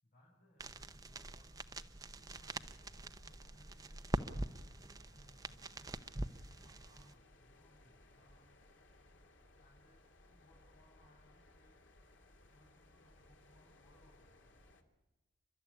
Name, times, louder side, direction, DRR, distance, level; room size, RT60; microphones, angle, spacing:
voice 1, 0.0-5.7 6.3-8.7 9.6-11.8 12.5-14.7, left 1 dB, 45° left, -4 dB, 7.6 m, -69 dB
sound 1, 0.6-7.1, right 2 dB, 20° right, 0.8 m, -44 dB
sound 2, 2.2-14.8, left 1 dB, 75° left, 2.7 m, -64 dB
29.5 x 13.0 x 9.8 m, 1.1 s
head